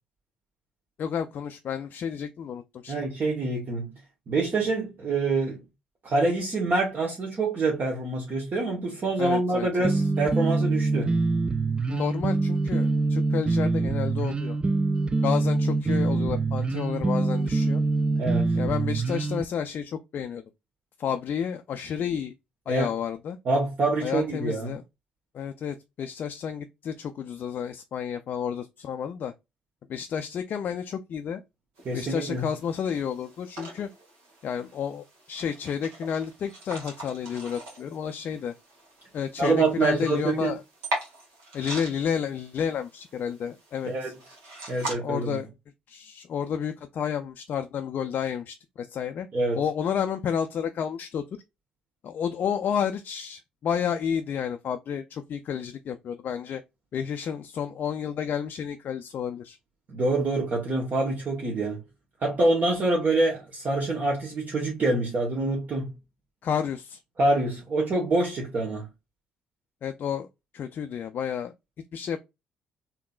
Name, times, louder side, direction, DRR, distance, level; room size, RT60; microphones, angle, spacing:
voice 1, 1.0-2.9 9.2-9.9 11.9-14.6 15.2-17.8 18.6-20.4 21.0-22.3 22.7-23.4 24.0-24.8 25.3-29.3 29.9-31.4 31.9-33.9 34.4-38.5 39.1-40.6 41.5-44.1 45.0-45.5 45.9-49.3 49.5-51.2 52.0-56.6 56.9-59.6 66.4-67.0 69.8-70.3 70.5-71.5 71.9-72.2, left 8 dB, 50° left, 0.4 m, -31 dB
voice 2, 2.9-3.9 4.3-5.6 6.0-11.1 18.2-18.5 22.7-22.9 23.5-24.7 31.8-32.4 39.4-40.5 43.8-44.1 44.7-45.4 49.3-49.6 59.9-61.8 62.2-65.9 67.2-68.8, right 2 dB, 45° right, 1.2 m, -26 dB
sound 1, 9.8-19.4, right 3 dB, 25° right, 0.4 m, -25 dB
sound 2, 31.8-44.9, right 1 dB, 65° right, 1.7 m, -41 dB
3.6 x 2.8 x 2.3 m
figure-of-eight pair, 50°, 4 cm